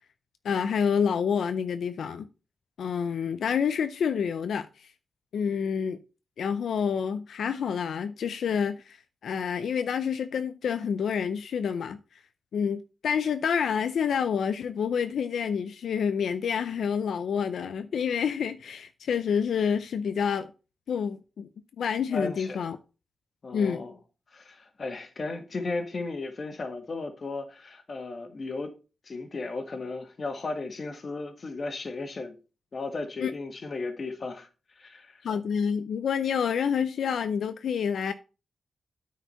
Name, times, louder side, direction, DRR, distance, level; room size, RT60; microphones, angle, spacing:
voice 1, 0.4-2.3 2.8-4.9 5.3-6.0 6.4-9.0 9.2-12.0 12.5-20.5 20.9-21.5 21.8-22.8 23.5-23.8 33.2-33.3 35.2-38.1, left 7 dB, 85° left, 0.5 m, -28 dB
voice 2, 22.1-22.6 23.4-24.0 24.3-28.8 29.0-32.4 32.7-35.2, left 3 dB, 45° left, 1.6 m, -35 dB
9.1 x 4.7 x 5.6 m
wide cardioid pair, 105°, 0 cm